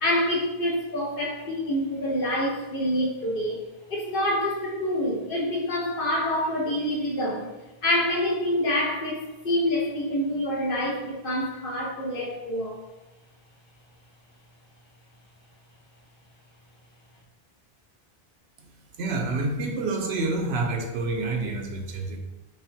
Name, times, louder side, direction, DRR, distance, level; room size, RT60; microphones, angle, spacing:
voice 1, 0.0-3.6 3.9-7.5 7.8-12.8, left 1 dB, 60° left, -3 dB, 1.0 m, -26 dB
voice 2, 19.0-22.2, right 3 dB, 80° right, 2 dB, 0.9 m, -28 dB
5.4 x 2.2 x 2.6 m, 1.1 s
omnidirectional pair, 1.1 m